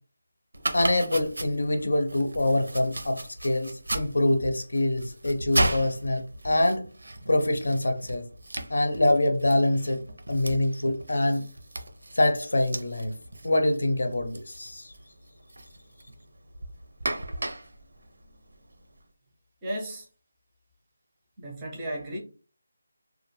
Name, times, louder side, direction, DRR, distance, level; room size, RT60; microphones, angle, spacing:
Domestic sounds home sounds, 0.5-19.0, right 1 dB, 70° right, 0.5 m, -36 dB
voice 1, 0.7-6.9 7.3-8.3 8.7-11.5 12.1-13.1 13.4-14.9, left 1 dB, 70° left, 0.5 m, -25 dB
voice 2, 19.6-20.1 21.4-22.2, right 1 dB, 10° right, 0.5 m, -34 dB
2.2 x 2.0 x 3.1 m
figure-of-eight pair, 175°, 0 cm